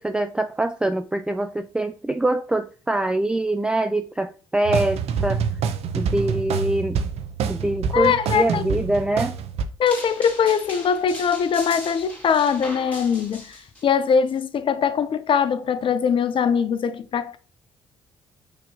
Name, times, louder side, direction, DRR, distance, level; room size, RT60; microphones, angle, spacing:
voice 1, 0.0-5.4 5.9-7.0 7.5-9.4, right 1 dB, 5° right, 0.3 m, -24 dB
sound 1, 4.6-9.6, right 6 dB, 65° right, 0.6 m, -26 dB
voice 2, 7.9-8.6 9.8-17.4, left 7 dB, 50° left, 0.6 m, -22 dB
sound 2, 9.9-13.9, left 1 dB, 10° left, 2.3 m, -38 dB
6.1 x 3.0 x 2.9 m
hypercardioid pair, 50°, 12 cm